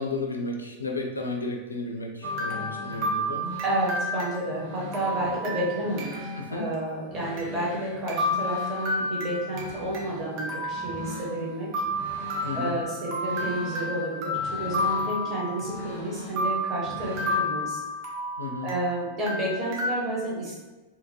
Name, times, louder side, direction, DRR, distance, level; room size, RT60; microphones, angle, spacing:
voice 1, 0.0-3.4 5.3-5.4 6.4-6.7 12.4-12.8 18.4-18.7, left 3 dB, 80° left, 2 dB, 0.4 m, -33 dB
sound 1, 2.2-6.4 6.7-6.8 7.4-7.5 8.1-10.0 10.4-11.4 11.7-15.9 16.4-18.9 19.3-20.0, left 1 dB, 45° right, 0.6 m, -31 dB
sound 2, 2.2-17.4, left 2 dB, 85° right, 1.3 m, -41 dB
voice 2, 3.6-6.1 6.5-11.7 12.5-17.8 18.6-20.6, right 1 dB, 25° right, -5 dB, 1.0 m, -30 dB
2.8 x 2.2 x 2.7 m, 1.2 s
figure-of-eight pair, 90°, 0 cm